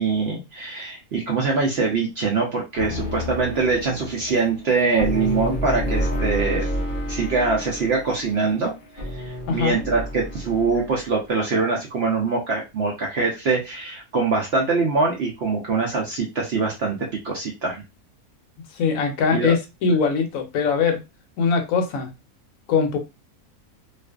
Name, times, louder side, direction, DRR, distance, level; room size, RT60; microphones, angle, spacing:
voice 1, 0.0-6.7 7.1-17.0 17.2-17.8 19.3-19.5, right 4 dB, 65° right, -1 dB, 0.6 m, -23 dB
sound 1, 2.8-11.0, equal, 55° left, 0.6 m, -29 dB
voice 2, 9.5-9.8 18.7-21.0 21.4-22.1 22.7-23.0, left 5 dB, 70° left, 5 dB, 1.0 m, -21 dB
2.5 x 2.4 x 2.2 m, 0.25 s
omnidirectional pair, 1.6 m